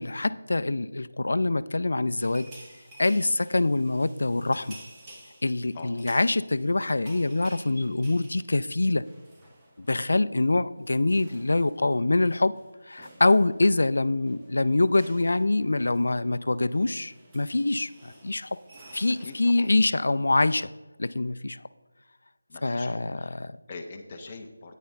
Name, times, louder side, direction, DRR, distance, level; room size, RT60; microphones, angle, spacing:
voice 1, 0.0-2.5 3.0-4.8 5.4-9.0 9.8-12.5 12.9-18.5 18.9-20.7 21.0-21.6 22.6-23.6, left 2 dB, 65° left, 15 dB, 0.4 m, -25 dB
sound 1, 2.2-10.1 10.3-10.5 10.8-19.8, right 1 dB, 10° right, 0.9 m, -52 dB
voice 2, 5.7-6.1 19.2-19.7 22.5-23.4 23.7-24.8, left 3 dB, 20° left, 2 dB, 0.8 m, -43 dB
9.5 x 9.3 x 3.5 m, 1.2 s
figure-of-eight pair, 175°, 0 cm